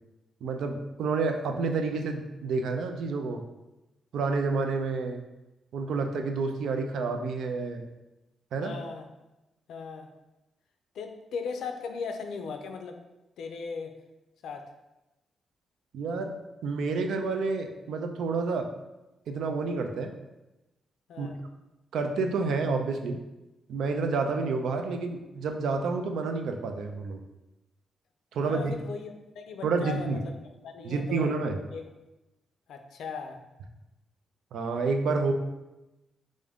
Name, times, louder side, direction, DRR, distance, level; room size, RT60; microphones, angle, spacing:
voice 1, 0.4-3.4 4.1-5.2 5.7-7.9 8.5-8.8 15.9-16.4 16.6-18.7 19.3-20.1 21.2-21.3 21.9-23.2 23.7-27.2 28.3-28.8 29.6-30.2 30.8-31.6 34.5-35.3, right 4 dB, 80° right, 5 dB, 0.4 m, -29 dB
voice 2, 8.6-9.1 9.7-10.1 10.9-13.0 13.4-13.9 14.4-14.7 21.1-21.4 28.4-30.4 30.6-31.3 31.7-31.8 32.7-33.4, left 5 dB, 80° left, 5 dB, 0.4 m, -38 dB
3.6 x 2.5 x 3.4 m, 1.0 s
wide cardioid pair, 150°, 0 cm